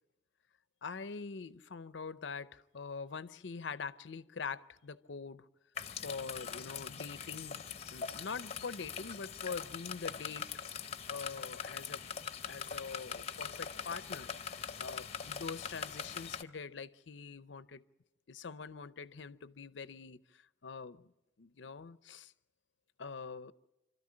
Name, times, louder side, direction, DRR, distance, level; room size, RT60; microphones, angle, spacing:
voice 1, 0.8-5.5 6.0-7.6 7.9-10.5 11.1-12.0 12.5-17.9 18.3-21.1 21.4-22.3 23.0-23.5, left 5 dB, 80° left, 0.7 m, -44 dB
sound 1, 5.8-16.4, left 7 dB, 35° left, 0.8 m, -42 dB
26.0 x 13.5 x 8.6 m
head